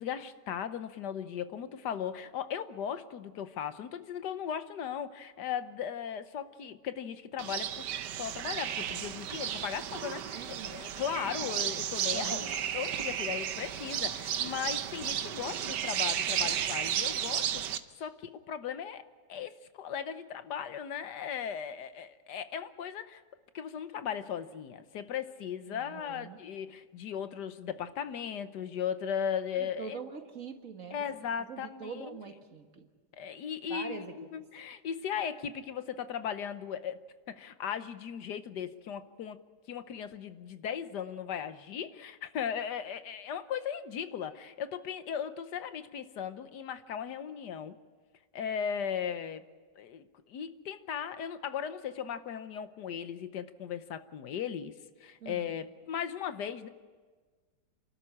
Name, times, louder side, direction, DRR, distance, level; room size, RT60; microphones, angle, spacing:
voice 1, 0.0-7.8 8.2-23.2 23.5-30.0 30.9-32.2 33.1-37.0 37.3-39.4 39.7-47.8 48.3-49.4 49.8-54.7 55.0-56.7, left 8 dB, 80° left, 11 dB, 1.5 m, -37 dB
sound 1, 7.4-17.8, right 10 dB, 85° right, 1.5 m, -33 dB
voice 2, 10.3-10.8 11.4-11.7 12.1-12.6 25.7-26.4 29.6-31.1 31.4-32.9 33.7-34.2 55.2-55.5, right 5 dB, 50° right, 5 dB, 1.9 m, -43 dB
28.0 x 12.5 x 9.8 m, 1.4 s
omnidirectional pair, 1.8 m